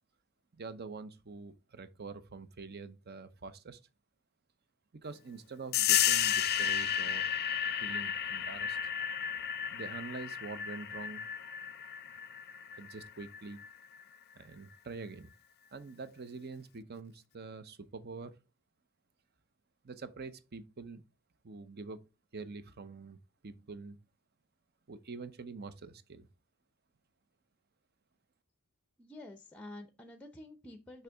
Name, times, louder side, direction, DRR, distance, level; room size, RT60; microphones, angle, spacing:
voice 1, 0.5-3.8 5.0-7.3 7.8-8.8 9.7-11.3 12.7-13.6 14.3-15.3 15.7-18.4 19.8-21.0 21.4-22.1 22.3-23.2 23.4-24.0 24.9-26.3, right 4 dB, 50° right, 0.7 m, -45 dB
sound 1, 5.7-14.0, left 9 dB, 50° left, 0.4 m, -33 dB
voice 2, 29.0-31.0, left 1 dB, 5° left, 0.7 m, -49 dB
6.5 x 5.8 x 3.4 m
head